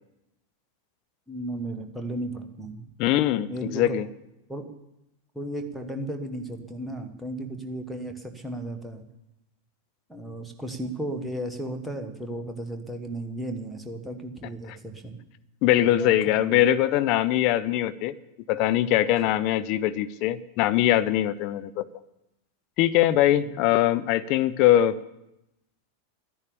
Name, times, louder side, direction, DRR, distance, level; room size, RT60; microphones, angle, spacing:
voice 1, 1.3-2.9 3.5-3.9 4.5-4.7 5.3-9.0 10.1-15.2 15.8-16.6 23.4-23.5, right 1 dB, 5° right, 3 dB, 1.5 m, -35 dB
voice 2, 3.0-4.1 15.6-18.1 18.5-21.9 22.8-25.0, left 13 dB, 40° left, 13 dB, 0.6 m, -22 dB
12.5 x 10.5 x 7.1 m, 0.89 s
figure-of-eight pair, 90°, 0 cm